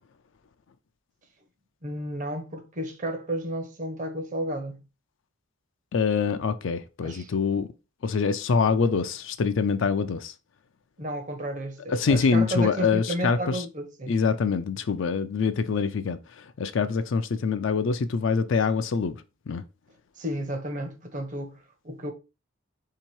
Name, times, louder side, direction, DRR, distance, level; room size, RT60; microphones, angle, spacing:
voice 1, 1.8-4.8 7.0-7.3 11.0-14.2 20.2-22.1, right 1 dB, 35° right, 0.7 m, -32 dB
voice 2, 5.9-7.7 8.0-10.3 11.9-13.6 14.1-19.1 19.5-19.6, left 5 dB, 60° left, 0.4 m, -25 dB
3.5 x 2.8 x 4.5 m
head